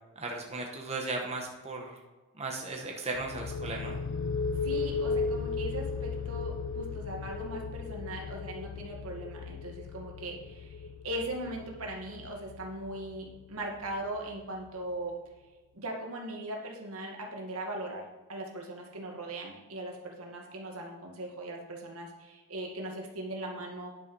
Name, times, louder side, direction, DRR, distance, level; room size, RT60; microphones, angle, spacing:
voice 1, 0.1-2.0 2.3-4.0, right 3 dB, 30° right, 0 dB, 1.3 m, -36 dB
sound 1, 3.1-14.7, left 4 dB, 60° left, 0.4 m, -36 dB
voice 2, 4.6-15.2 15.7-23.9, right 1 dB, 80° right, 0 dB, 2.0 m, -39 dB
10.5 x 5.9 x 5.5 m, 1.3 s
head